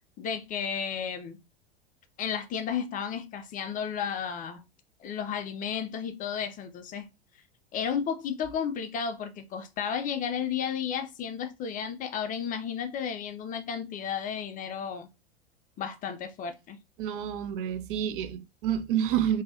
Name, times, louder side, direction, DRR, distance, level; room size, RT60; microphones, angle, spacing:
voice 1, 0.2-1.4 2.2-4.6 5.0-7.1 7.7-15.1 15.8-16.8, left 7 dB, 25° left, 0.5 m, -33 dB
voice 2, 17.0-19.4, right 10 dB, 55° right, 0.6 m, -29 dB
3.8 x 2.7 x 2.6 m
hypercardioid pair, 90°, 31 cm